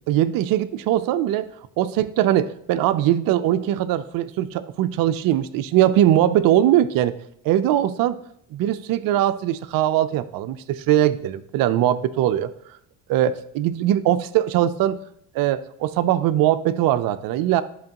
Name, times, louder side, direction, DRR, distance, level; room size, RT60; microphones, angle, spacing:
voice 1, 0.1-1.5 1.8-7.1 7.4-8.2 8.5-12.5 13.1-15.0 15.3-17.6, right 12 dB, 60° right, 11 dB, 0.5 m, -21 dB
10.5 x 3.8 x 2.9 m, 0.68 s
supercardioid pair, 75°, 40 cm